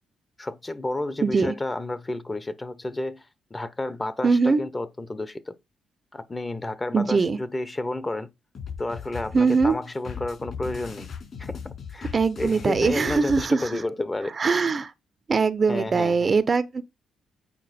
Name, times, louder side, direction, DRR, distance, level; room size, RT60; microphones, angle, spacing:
voice 1, 0.4-5.5 6.1-8.3 8.8-11.1 11.4-11.6 11.9-14.3 15.7-16.3, left 2 dB, 20° left, 0.9 m, -31 dB
voice 2, 1.2-1.5 4.2-4.6 6.9-7.4 9.3-9.8 12.1-13.6 14.4-14.9 15.3-16.8, right 4 dB, 35° right, 0.6 m, -21 dB
sound 1, 8.6-13.4, left 6 dB, 50° left, 4.1 m, -37 dB
8.4 x 4.5 x 4.3 m
cardioid pair, 90°, 0 cm